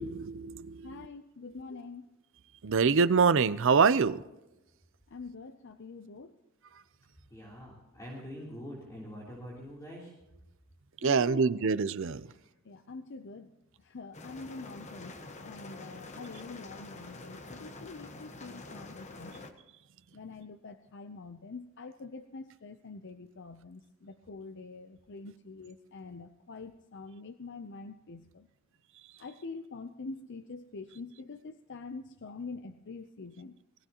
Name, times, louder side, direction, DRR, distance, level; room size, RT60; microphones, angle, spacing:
voice 1, 0.0-1.1 2.6-4.2 11.0-12.3, right 5 dB, 60° right, 15 dB, 0.5 m, -25 dB
voice 2, 0.8-2.1 5.1-6.3 11.0-11.6 12.6-13.5 13.8-19.4 20.1-28.5 29.2-33.6, left 3 dB, 60° left, 8 dB, 0.6 m, -45 dB
voice 3, 7.3-10.1, equal, 15° left, -5 dB, 3.3 m, -44 dB
sound 1, 14.1-19.5, left 2 dB, 35° left, 1.2 m, -46 dB
20.5 x 15.5 x 3.0 m, 0.97 s
head